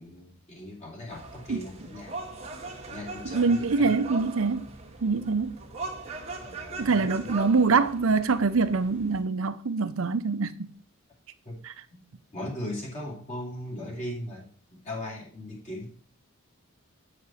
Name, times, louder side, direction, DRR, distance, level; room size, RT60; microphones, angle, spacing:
voice 1, 0.0-2.2 2.9-3.9 6.4-7.3 11.4-11.6 11.9-12.0 12.3-15.9, left 1 dB, 30° left, 2.4 m, -38 dB
sound 1, 1.1-9.2, right 3 dB, 30° right, 1.2 m, -40 dB
voice 2, 3.2-4.6 5.0-5.6 6.8-10.7 11.6-11.7, right 4 dB, 70° right, 0.6 m, -24 dB
8.6 x 4.9 x 4.3 m
head